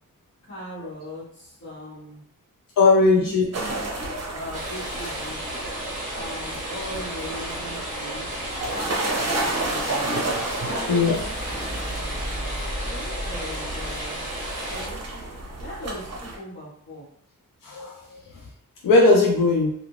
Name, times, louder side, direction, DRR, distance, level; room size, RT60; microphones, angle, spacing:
voice 1, 0.5-2.2 2.9-3.9 4.3-5.5 6.1-10.1 10.6-11.3 12.8-14.3 14.7-15.2 15.6-17.1, equal, 55° left, -9 dB, 1.2 m, -39 dB
voice 2, 2.8-3.5 8.4-8.5 9.0-9.2 10.9-11.1 17.6-18.2 18.8-19.7, left 3 dB, 70° left, -2 dB, 0.5 m, -18 dB
sound 1, 3.5-16.4, right 2 dB, 45° right, 0.6 m, -32 dB
sound 2, 4.5-14.9, right 1 dB, 20° right, 1.0 m, -33 dB
sound 3, 9.5-15.9, equal, 30° left, 0.6 m, -37 dB
2.4 x 2.3 x 3.0 m, 0.64 s
wide cardioid pair, 165°, 34 cm